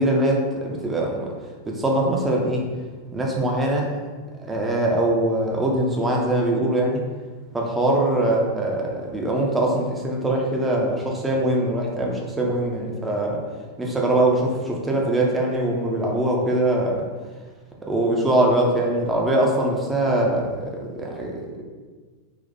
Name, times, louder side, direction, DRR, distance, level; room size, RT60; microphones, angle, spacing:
voice 1, 0.0-1.3 1.7-2.6 3.1-3.9 4.4-7.0 7.5-13.4 13.8-17.1 17.9-21.6, right 1 dB, 15° right, -1 dB, 0.7 m, -22 dB
4.1 x 2.5 x 4.1 m, 1.4 s
figure-of-eight pair, 90°, 0 cm